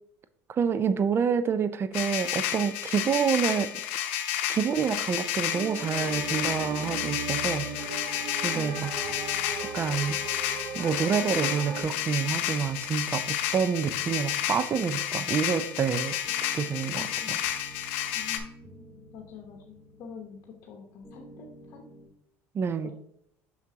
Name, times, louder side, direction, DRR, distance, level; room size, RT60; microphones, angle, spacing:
voice 1, 0.5-3.7 4.5-8.0 8.4-8.9 9.7-10.2 10.7-17.4 22.5-22.9, right 6 dB, 35° right, 12 dB, 0.5 m, -28 dB
sound 1, 1.9-18.4, left 11 dB, 80° left, 0.7 m, -31 dB
sound 2, 4.7-22.1, equal, 10° left, 2.1 m, -52 dB
sound 3, 5.5-11.8, right 5 dB, 55° right, 1.5 m, -37 dB
voice 2, 8.5-8.8 9.1-9.2 17.0-17.4 18.1-21.9 22.8-22.9, left 5 dB, 55° left, 0 dB, 1.0 m, -46 dB
5.9 x 5.9 x 2.8 m, 0.72 s
supercardioid pair, 95°, 7 cm